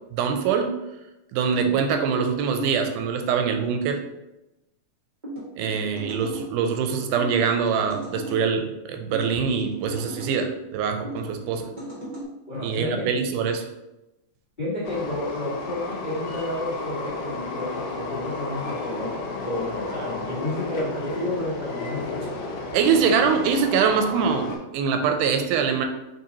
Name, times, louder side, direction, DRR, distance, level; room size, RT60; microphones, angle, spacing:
voice 1, 0.1-0.7 1.3-4.0 5.6-11.7 12.6-13.7 22.7-25.9, right 6 dB, 85° right, 5 dB, 2.1 m, -24 dB
voice 2, 1.4-1.7 12.5-13.1 14.6-22.2, left 1 dB, 35° left, -12 dB, 0.7 m, -31 dB
sound 1, 5.2-6.5 7.2-8.4 9.1-10.3 11.0-12.2, right 1 dB, 60° right, 0.4 m, -37 dB
Train, 14.8-24.6, left 3 dB, 75° left, 1.7 m, -33 dB
4.4 x 3.8 x 2.8 m, 0.95 s
omnidirectional pair, 3.7 m